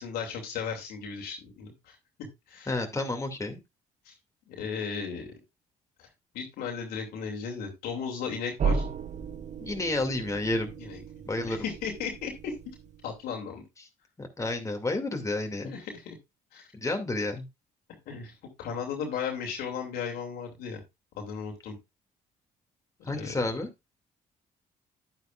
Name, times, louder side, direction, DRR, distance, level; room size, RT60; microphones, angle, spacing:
voice 1, 0.0-2.0 2.5-2.7 4.1-4.2 4.5-5.3 6.0-6.1 6.3-8.9 10.8-11.0 11.5-12.5 13.0-13.6 15.6-16.2 16.5-16.7 18.1-20.8 21.2-21.8 23.1-23.3, left 6 dB, 80° left, 1 dB, 2.6 m, -35 dB
voice 2, 2.7-3.6 9.6-10.7 11.3-11.6 14.2-15.7 16.7-17.5 23.1-23.7, left 2 dB, 20° left, 3 dB, 2.4 m, -30 dB
sound 1, 8.6-13.3, right 5 dB, 50° right, 0.8 m, -34 dB
10.0 x 9.4 x 2.5 m, 0.22 s
supercardioid pair, 55°, 16 cm